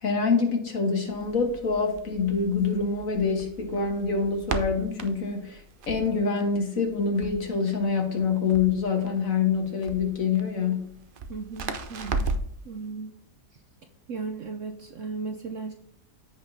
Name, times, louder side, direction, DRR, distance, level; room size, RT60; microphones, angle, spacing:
voice 1, 0.0-10.9, left 5 dB, 55° left, 2 dB, 1.7 m, -26 dB
Crackle, 1.1-12.6, right 3 dB, 90° right, 0.4 m, -37 dB
voice 2, 11.3-12.4 12.6-13.1 14.1-15.7, right 4 dB, 65° right, 5 dB, 0.8 m, -36 dB
14.0 x 5.2 x 2.7 m, 0.69 s
omnidirectional pair, 1.8 m